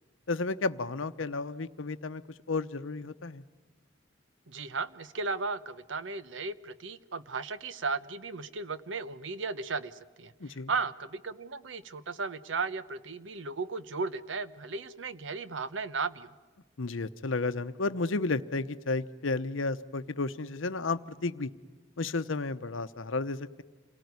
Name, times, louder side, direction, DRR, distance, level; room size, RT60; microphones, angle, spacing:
voice 1, 0.3-2.2 2.5-3.4 10.4-10.7 16.8-21.5 22.0-23.6, left 3 dB, 90° left, 11 dB, 0.9 m, -32 dB
voice 2, 4.5-16.3, right 4 dB, 70° right, 14 dB, 0.9 m, -35 dB
28.5 x 18.5 x 9.5 m, 1.3 s
head